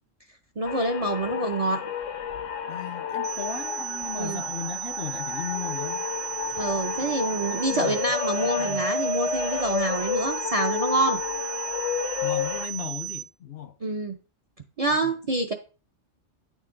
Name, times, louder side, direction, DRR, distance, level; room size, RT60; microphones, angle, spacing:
sound 1, 0.6-12.7, left 8 dB, 80° left, 1.1 m, -31 dB
voice 1, 0.6-1.8 4.2-4.4 6.6-11.2 13.8-14.2 14.8-15.5, right 2 dB, 45° right, 0.5 m, -26 dB
voice 2, 2.7-6.1 7.0-7.1 7.5-8.1 8.4-8.9 12.2-13.8 15.0-15.1, left 8 dB, 60° left, 0.7 m, -36 dB
sound 2, 3.2-13.2, right 14 dB, 80° right, 1.0 m, -35 dB
9.1 x 6.4 x 3.7 m
omnidirectional pair, 1.3 m